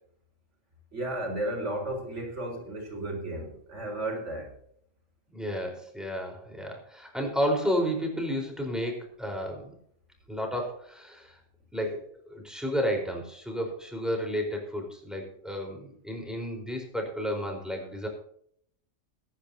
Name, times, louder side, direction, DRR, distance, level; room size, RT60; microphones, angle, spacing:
voice 1, 0.9-4.5, right 1 dB, 65° right, 1 dB, 5.1 m, -33 dB
voice 2, 5.3-9.7 10.3-11.4 11.7-18.1, equal, ahead, 1 dB, 4.3 m, -32 dB
22.5 x 10.5 x 2.8 m, 0.66 s
omnidirectional pair, 1.3 m